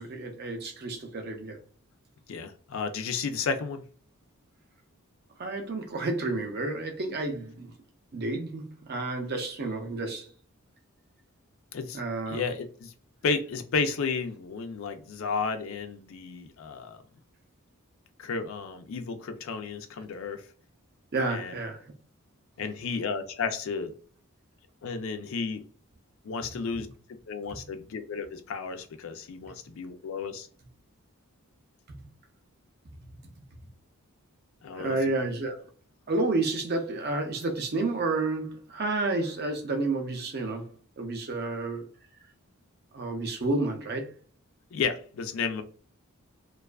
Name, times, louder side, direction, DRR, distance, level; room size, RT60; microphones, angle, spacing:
voice 1, 0.0-1.6 5.4-7.7 8.1-10.3 11.9-12.4 21.1-21.8 34.8-35.6 36.1-40.7 41.0-41.9 42.9-44.1, right 2 dB, 45° right, 0.5 m, -30 dB
voice 2, 2.3-3.8 11.7-12.0 12.3-12.9 13.2-17.0 18.2-20.5 21.3-21.5 22.6-23.9 24.8-25.6 26.2-26.9 27.3-30.5 34.6-35.2 44.7-45.6, left 5 dB, 65° left, 0.4 m, -32 dB
2.4 x 2.3 x 2.2 m
head